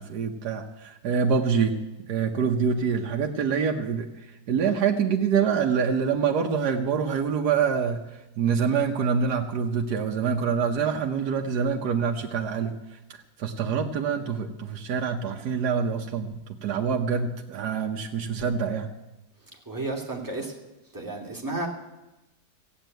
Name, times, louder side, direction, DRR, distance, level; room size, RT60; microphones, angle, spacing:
voice 1, 0.0-1.7 2.1-8.0 8.4-18.9, right 6 dB, 75° right, 2 dB, 1.4 m, -26 dB
voice 2, 19.7-20.5 20.9-21.7, right 2 dB, 10° right, -1 dB, 2.4 m, -32 dB
15.5 x 8.0 x 9.1 m, 1.0 s
omnidirectional pair, 1.7 m